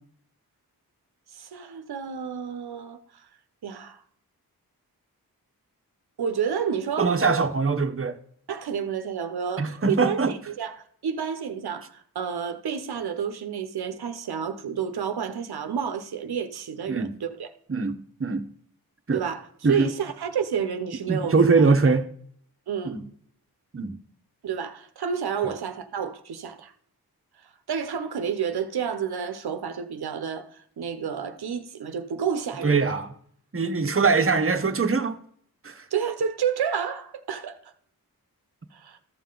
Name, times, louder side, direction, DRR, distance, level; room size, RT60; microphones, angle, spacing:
voice 1, 1.3-3.3 3.6-4.0 6.2-7.2 8.5-10.2 10.5-17.5 19.1-21.7 22.7-22.9 24.4-26.7 27.7-33.0 35.9-37.6 38.7-39.0, right 7 dB, 80° right, 0.9 m, -30 dB
voice 2, 7.0-8.2 9.6-10.3 16.9-17.1 17.7-18.5 19.1-19.2 19.6-19.9 21.1-22.1 22.8-23.0 23.7-24.0 25.4-25.5 32.6-33.1 33.5-35.2 35.6-35.9, right 4 dB, 35° right, 1.0 m, -22 dB
14.0 x 5.6 x 3.9 m
cardioid pair, 45°, 38 cm